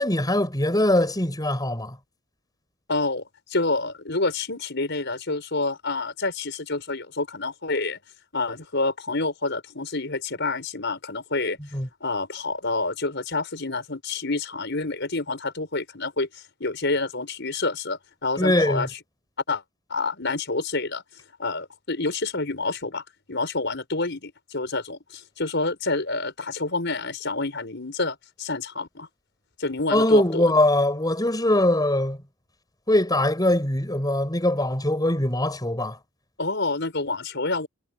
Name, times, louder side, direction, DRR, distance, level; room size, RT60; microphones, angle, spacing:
voice 1, 0.0-2.0 11.7-11.9 18.4-18.9 29.9-32.2 32.9-36.0, left 1 dB, 20° left, 6.4 m, -22 dB
voice 2, 2.9-3.2 3.5-8.0 8.3-11.6 12.0-18.9 19.5-19.6 19.9-21.0 21.4-29.1 29.6-30.5 36.4-37.7, left 3 dB, 60° left, 6.0 m, -28 dB
head